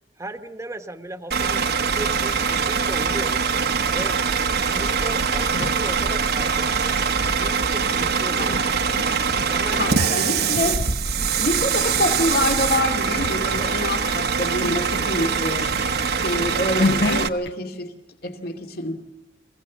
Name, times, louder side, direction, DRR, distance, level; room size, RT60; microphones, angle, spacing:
voice 1, 0.2-3.5 3.9-4.2 4.6-7.0 7.3-8.9 9.3-10.3, right 1 dB, 15° right, 7 dB, 1.2 m, -36 dB
Bus / Idling, 1.3-17.3, right 6 dB, 60° right, 1.1 m, -23 dB
sound 1, 4.9-6.9 7.8-12.1 12.5-12.8 13.2-13.8 14.2-14.3 14.6-17.5, left 3 dB, 90° left, 0.9 m, -31 dB
voice 2, 9.7-10.8 11.4-15.7 16.1-17.9 18.2-19.0, left 1 dB, 60° left, 4 dB, 2.5 m, -26 dB
27.5 x 16.5 x 7.3 m, 1.0 s
head